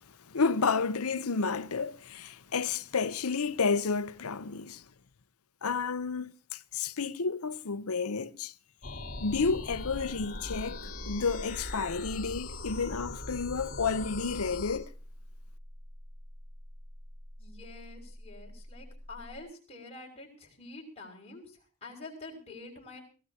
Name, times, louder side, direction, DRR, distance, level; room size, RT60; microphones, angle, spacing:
voice 1, 0.3-4.8 5.6-8.5 9.2-14.9, left 5 dB, 90° left, 0.8 m, -31 dB
sound 1, 8.8-14.8, left 2 dB, 45° left, 3.8 m, -40 dB
sound 2, 9.2-19.4, equal, 50° right, 5.4 m, -48 dB
voice 2, 17.4-23.0, left 2 dB, 30° left, 6.0 m, -47 dB
23.0 x 16.5 x 2.9 m
head